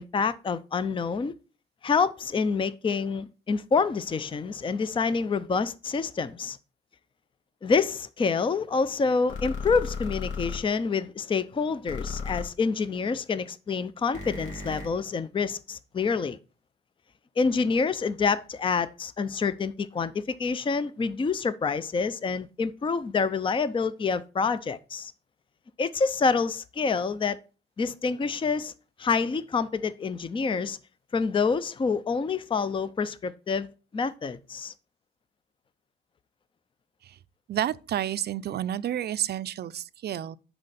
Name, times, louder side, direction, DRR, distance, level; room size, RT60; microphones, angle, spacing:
voice 1, 0.0-1.3 1.8-6.6 7.6-16.4 17.4-25.1 25.8-27.4 27.8-28.7 29.0-30.8 31.1-33.7 33.9-34.7, left 5 dB, 25° left, 0.5 m, -27 dB
sound 1, 9.3-10.6 11.9-12.4 14.1-14.9, left 4 dB, 75° left, 2.4 m, -34 dB
voice 2, 37.5-40.4, right 11 dB, 55° right, 0.5 m, -30 dB
10.5 x 4.5 x 4.1 m
cardioid pair, 90°, 20 cm